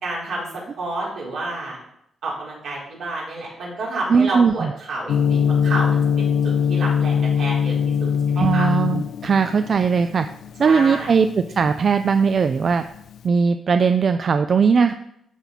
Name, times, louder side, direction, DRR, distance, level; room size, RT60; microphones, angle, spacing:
voice 1, 0.0-1.8 2.2-8.7 10.6-11.1, right 2 dB, 70° right, -5 dB, 3.8 m, -30 dB
voice 2, 4.1-4.7 8.4-10.3 10.6-12.8 13.2-14.9, right 5 dB, 40° right, 9 dB, 0.3 m, -19 dB
Gong, 5.1-13.2, left 7 dB, 75° left, 0.4 m, -22 dB
12.5 x 4.5 x 4.1 m, 0.75 s
cardioid pair, 140°, 0 cm